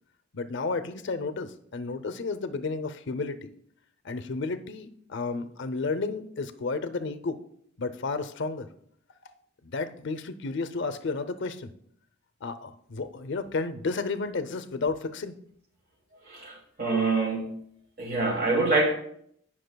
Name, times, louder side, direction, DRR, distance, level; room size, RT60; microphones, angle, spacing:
voice 1, 0.3-3.5 4.0-7.4 7.8-8.7 9.6-11.7 12.4-15.3, left 3 dB, 60° left, 11 dB, 0.6 m, -32 dB
voice 2, 16.2-17.6 18.0-18.9, right 3 dB, 45° right, 0 dB, 1.4 m, -25 dB
17.5 x 6.0 x 2.3 m, 0.68 s
head